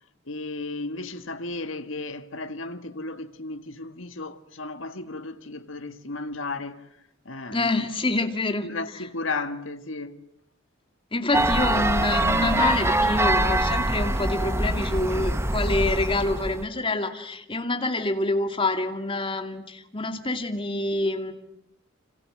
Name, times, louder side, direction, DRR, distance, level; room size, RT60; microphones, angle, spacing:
voice 1, 0.3-6.9 7.3-7.7 8.6-10.2, left 3 dB, 75° left, 1.8 m, -34 dB
voice 2, 7.5-8.7 11.1-21.3, left 2 dB, 25° left, 2.5 m, -27 dB
sound 1, 11.3-16.6, right 1 dB, 15° right, 1.1 m, -24 dB
28.5 x 26.5 x 7.7 m
head